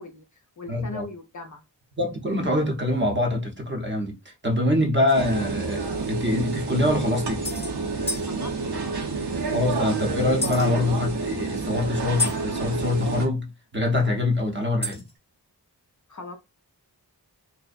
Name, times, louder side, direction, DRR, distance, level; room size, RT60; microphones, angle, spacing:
voice 1, 0.0-1.6 8.2-9.0 16.1-16.4, left 3 dB, 45° left, 0.5 m, -40 dB
voice 2, 0.7-1.0 2.0-4.1 4.4-7.4 9.5-13.5 13.7-15.0, left 1 dB, 25° right, 0.7 m, -24 dB
sound 1, 5.1-5.2 6.2-6.3 6.5-6.6 7.4-7.7 8.1-8.3 10.4-10.7 12.2-12.4 14.8-15.1, left 3 dB, 15° left, 0.7 m, -29 dB
sound 2, 5.1-13.3, right 4 dB, 65° right, 0.7 m, -29 dB
2.5 x 2.1 x 2.4 m
wide cardioid pair, 60°, 43 cm